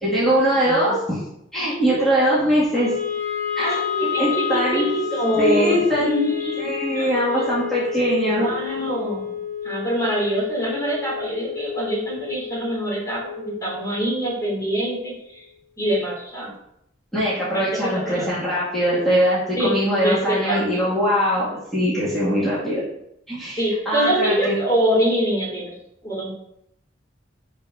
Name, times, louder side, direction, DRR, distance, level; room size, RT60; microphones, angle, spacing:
voice 1, 0.0-1.2 1.5-3.0 3.6-3.8 4.2-4.9 5.3-8.5 17.1-22.8 23.3-23.6 23.9-24.6, equal, ahead, -11 dB, 2.2 m, -21 dB
voice 2, 0.6-0.9 3.6-7.2 8.2-9.3 9.6-15.4 15.8-16.5 17.4-18.3 19.6-19.8 20.0-20.8 23.6-25.8 26.0-26.3, right 1 dB, 20° left, -5 dB, 2.7 m, -25 dB
Wind instrument woodwind instrument, 2.7-14.9, left 9 dB, 65° left, 2.8 m, -30 dB
10.5 x 4.3 x 2.8 m, 0.76 s
head